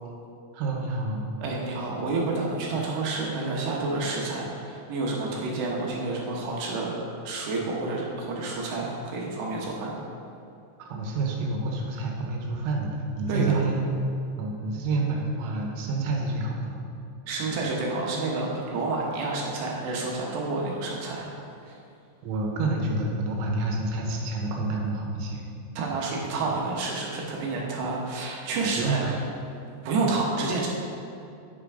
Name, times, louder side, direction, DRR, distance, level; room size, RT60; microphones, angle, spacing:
voice 1, 0.5-1.4 10.8-14.0 14.4-16.8 22.2-25.4 28.6-29.2, right 3 dB, 90° right, 0 dB, 3.4 m, -28 dB
voice 2, 1.4-6.9 7.2-10.0 13.3-13.6 17.3-21.3 21.7-21.8 25.8-29.2 29.8-30.7, right 3 dB, 75° right, -3 dB, 3.2 m, -29 dB
10.5 x 5.9 x 4.9 m, 2.6 s
omnidirectional pair, 5.3 m